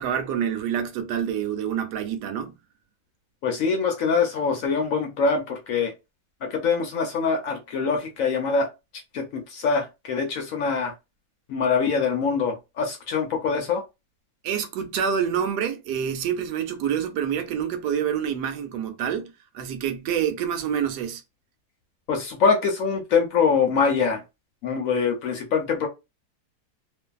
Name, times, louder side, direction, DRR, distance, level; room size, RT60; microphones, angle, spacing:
voice 1, 0.0-2.5 14.4-21.2, right 8 dB, 80° right, 1.1 m, -27 dB
voice 2, 3.4-5.9 6.4-8.7 9.1-10.9 11.5-13.8 22.1-24.2 24.6-25.9, left 5 dB, 65° left, 0.9 m, -24 dB
2.6 x 2.5 x 2.3 m
omnidirectional pair, 1.8 m